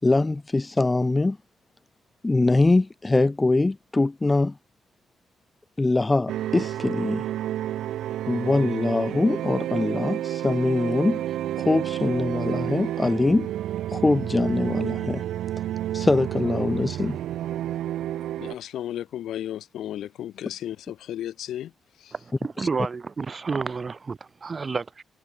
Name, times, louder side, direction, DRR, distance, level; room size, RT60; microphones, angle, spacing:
voice 1, 0.0-1.4 2.2-4.5 5.8-7.3 8.3-11.2 11.6-13.5 13.9-15.2 15.9-17.2 22.6-22.7, left 2 dB, 15° left, 1.4 m, -23 dB
sound 1, 6.3-18.6, right 12 dB, 85° right, 0.6 m, -30 dB
voice 2, 18.4-21.7 22.0-22.1, left 11 dB, 75° left, 4.8 m, -34 dB
voice 3, 22.1-25.0, right 4 dB, 30° right, 3.7 m, -30 dB
cardioid pair, 130°, 0 cm